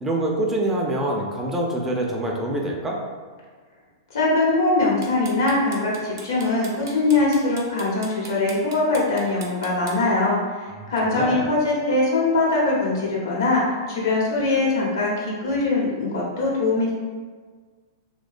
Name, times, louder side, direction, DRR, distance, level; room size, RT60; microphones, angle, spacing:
voice 1, 0.0-3.0 10.8-11.5, right 1 dB, 15° right, -2 dB, 0.3 m, -25 dB
voice 2, 4.1-13.6 13.9-16.9, left 2 dB, 75° left, -5 dB, 0.8 m, -22 dB
sound 1, 4.8-9.9, right 4 dB, 70° right, 0.5 m, -40 dB
2.3 x 2.1 x 2.5 m, 1.5 s
hypercardioid pair, 115°, 2 cm